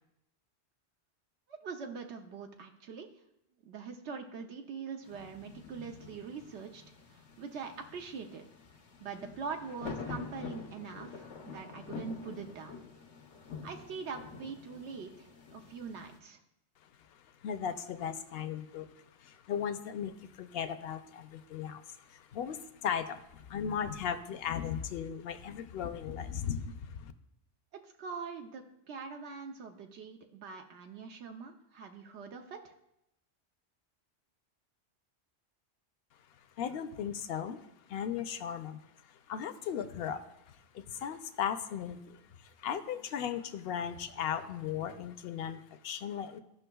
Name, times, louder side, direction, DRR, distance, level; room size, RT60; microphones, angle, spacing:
voice 1, 1.5-3.1 3.6-6.8 7.1-8.4 9.0-12.8 13.6-16.4 27.7-32.7, right 5 dB, 80° right, 4 dB, 1.0 m, -43 dB
sound 1, 5.0-16.2, left 5 dB, 90° left, 1.1 m, -47 dB
voice 2, 17.1-27.1 36.6-46.4, left 8 dB, 65° left, 10 dB, 0.8 m, -37 dB
14.0 x 5.7 x 2.3 m, 0.83 s
omnidirectional pair, 1.1 m